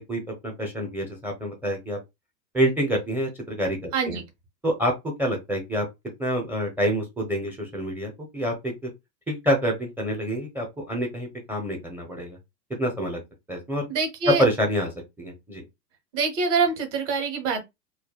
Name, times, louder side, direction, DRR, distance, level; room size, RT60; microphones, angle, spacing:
voice 1, 0.0-2.0 2.5-4.2 4.6-5.9 6.2-8.9 9.3-12.4 12.8-13.2 13.5-13.9 14.3-14.9 15.2-15.6, equal, 5° right, 0.5 m, -27 dB
voice 2, 3.9-4.2 13.9-14.4 16.1-17.6, right 5 dB, 45° right, 1.1 m, -25 dB
3.2 x 2.2 x 2.3 m
figure-of-eight pair, 95°, 48 cm